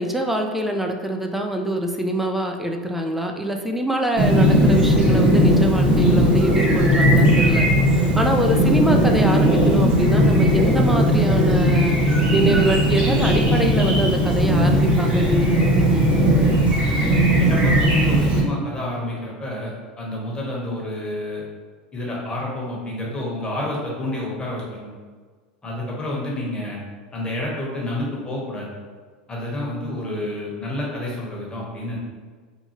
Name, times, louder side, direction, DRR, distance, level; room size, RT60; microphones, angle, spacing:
voice 1, 0.0-7.7 7.9-16.0, right 1 dB, 5° right, 3 dB, 0.3 m, -24 dB
Chirp tweet, 4.2-18.4, equal, 30° right, 0.9 m, -17 dB
voice 2, 17.4-19.7 20.0-21.4 21.9-24.9 25.6-26.8 27.1-28.7 29.3-32.0, left 1 dB, 20° left, -4 dB, 1.0 m, -29 dB
2.7 x 2.2 x 2.9 m, 1.5 s
hypercardioid pair, 95°, 5 cm